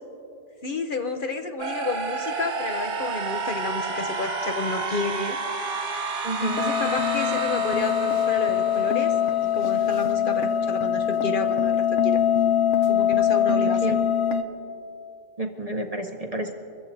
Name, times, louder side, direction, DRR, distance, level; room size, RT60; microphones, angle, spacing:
voice 1, 0.6-5.4 6.4-9.1 9.4-12.2 12.9-14.0, left 3 dB, 50° left, 6 dB, 0.9 m, -30 dB
sound 1, 1.6-9.5, right 4 dB, 80° right, 1.3 m, -31 dB
voice 2, 6.2-6.7 13.8-14.0 15.4-16.5, right 2 dB, 40° right, 4 dB, 0.7 m, -30 dB
sound 2, 6.4-14.4, left 9 dB, 85° left, 1.1 m, -23 dB
24.5 x 15.0 x 2.7 m, 2.7 s
omnidirectional pair, 1.2 m